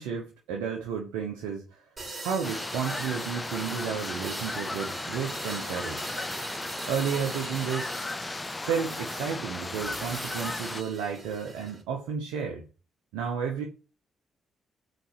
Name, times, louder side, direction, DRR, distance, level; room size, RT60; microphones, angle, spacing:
voice 1, 0.0-1.9 2.2-6.2 6.9-8.1 8.6-12.6 13.1-13.6, right 7 dB, 85° right, 2 dB, 0.9 m, -32 dB
sound 1, 2.0-11.8, right 3 dB, 40° right, 3.2 m, -41 dB
sound 2, 2.4-10.8, left 2 dB, 25° left, 0.4 m, -36 dB
5.3 x 4.2 x 6.1 m, 0.34 s
hypercardioid pair, 45°, 0 cm